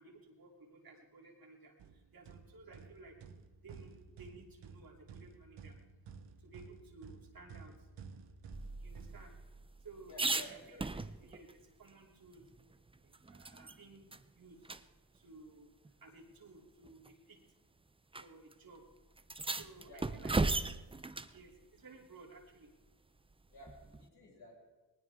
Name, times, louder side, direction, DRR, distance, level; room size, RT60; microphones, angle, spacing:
voice 1, 0.0-3.2 3.6-3.9 4.2-5.8 6.4-7.7 8.8-9.3 9.8-12.4 13.0-14.6 15.1-15.7 16.0-17.4 18.2-18.8 19.6-20.4 21.2-22.7, right 3 dB, 55° right, 0 dB, 3.1 m, -56 dB
sound 1, 1.8-9.8, right 5 dB, 90° right, 1.1 m, -54 dB
sound 2, 8.5-11.5 11.9-12.0 12.3-13.8 14.1-14.2 14.6-14.8 15.8-15.9 16.8-17.1 18.1-18.2 18.5-18.6 19.2-21.4 23.6-24.1, right 3 dB, 15° right, 0.5 m, -37 dB
voice 2, 10.1-11.0 19.8-20.4 23.5-24.6, left 1 dB, 70° left, -4 dB, 7.6 m, -54 dB
20.0 x 19.0 x 3.6 m, 1.2 s
cardioid pair, 90°, 41 cm